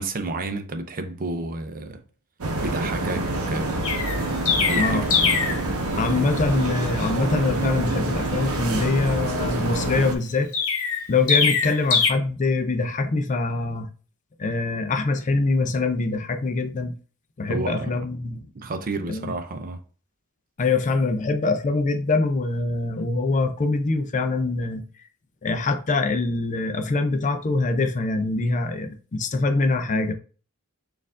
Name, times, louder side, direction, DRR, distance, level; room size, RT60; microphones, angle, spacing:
voice 1, 0.0-2.0 2.6-3.8 4.7-5.4 17.5-18.0 18.5-19.8, right 2 dB, 40° right, 0.5 m, -31 dB
sound 1, 2.4-10.2, right 2 dB, 75° right, 0.8 m, -27 dB
Chirp tweet, 3.8-5.6 10.5-12.1, left 5 dB, 70° left, 1.0 m, -22 dB
voice 2, 6.0-10.5 11.1-13.9 14.4-16.9 17.4-18.5 19.1-19.3 20.6-24.8 25.4-30.1, left 3 dB, 35° left, 0.4 m, -24 dB
4.4 x 2.5 x 3.6 m
head